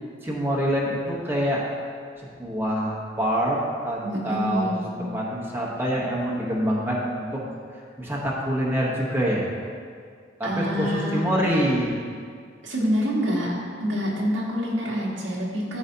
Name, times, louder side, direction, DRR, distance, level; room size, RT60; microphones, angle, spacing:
voice 1, 0.2-1.6 2.4-4.7 5.0-7.4 8.0-9.5 10.4-11.9, equal, 10° right, -4 dB, 1.1 m, -25 dB
voice 2, 4.0-5.0 10.4-11.2 12.6-13.5 13.8-15.8, equal, 85° right, -3 dB, 1.5 m, -26 dB
13.0 x 4.9 x 2.8 m, 2.2 s
head